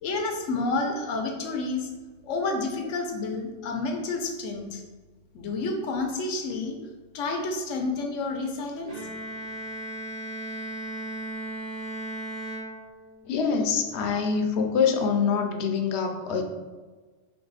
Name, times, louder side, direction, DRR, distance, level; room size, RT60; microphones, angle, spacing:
voice 1, 0.0-1.9 2.2-4.8 5.3-6.8 7.1-8.9, left 3 dB, 85° left, 3 dB, 1.1 m, -29 dB
Bowed string instrument, 8.9-13.3, right 1 dB, 35° right, 0.8 m, -36 dB
voice 2, 13.3-16.4, left 6 dB, 65° left, 5 dB, 0.8 m, -25 dB
3.9 x 3.4 x 4.0 m, 1.3 s
omnidirectional pair, 1.3 m